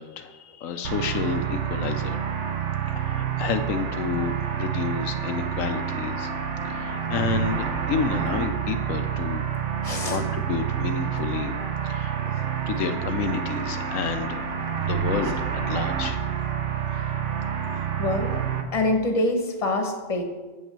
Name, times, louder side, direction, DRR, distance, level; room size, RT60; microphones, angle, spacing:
voice 1, 0.0-2.2 3.0-6.3 6.6-9.4 10.1-11.5 11.8-12.2 12.7-14.5 14.8-16.3 16.9-17.0, left 6 dB, 80° left, 8 dB, 1.0 m, -30 dB
sound 1, 0.8-18.6, right 8 dB, 65° right, 1.1 m, -28 dB
voice 2, 9.8-10.2 12.3-12.5 18.0-18.4 18.7-20.2, left 2 dB, 30° left, 3 dB, 1.2 m, -25 dB
7.4 x 5.5 x 7.4 m, 1.3 s
omnidirectional pair, 1.4 m